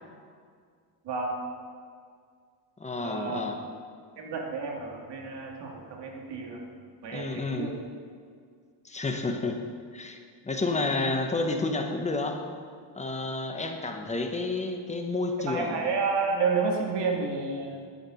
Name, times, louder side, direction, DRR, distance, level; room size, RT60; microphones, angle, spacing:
voice 1, 1.0-1.4 3.0-3.5 4.2-6.6 7.0-7.7 15.5-17.9, right 4 dB, 55° right, 1 dB, 2.1 m, -30 dB
voice 2, 2.8-3.6 7.1-7.7 8.8-9.6 9.9-10.2 10.4-12.4 12.9-15.9, left 3 dB, 15° left, 4 dB, 0.9 m, -30 dB
11.0 x 7.4 x 6.3 m, 2.1 s
cardioid pair, 140°, 49 cm